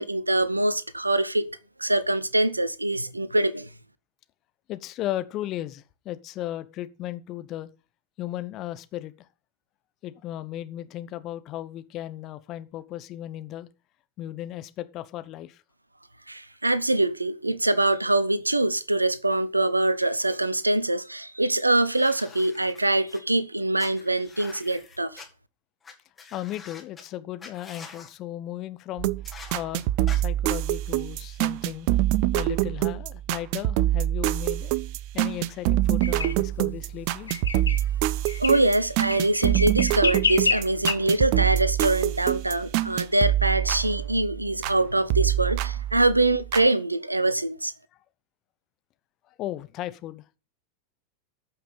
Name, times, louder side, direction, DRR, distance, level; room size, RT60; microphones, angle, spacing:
voice 1, 0.0-3.7 16.3-25.2 38.4-47.7, right 2 dB, 85° right, 0.8 m, -24 dB
voice 2, 4.7-7.7 8.2-9.3 10.0-13.7 14.2-15.6 26.3-29.1 29.5-31.9 32.3-34.7 35.1-37.3 37.8-38.0 49.3-50.4, left 13 dB, 35° left, 1.0 m, -36 dB
sound 1, 21.8-23.2 23.8-25.3 25.8-25.9 26.2-27.0 27.4-28.1 29.2-29.6 30.1-30.2, left 5 dB, 15° left, 2.8 m, -45 dB
sound 2, 29.0-44.8 45.1-46.7, right 14 dB, 45° right, 0.5 m, -26 dB
sound 3, 36.0-36.3 37.3-37.8 38.3-38.6 39.1-40.9, left 5 dB, 75° left, 1.2 m, -27 dB
14.5 x 5.9 x 5.5 m
figure-of-eight pair, 90°, 0 cm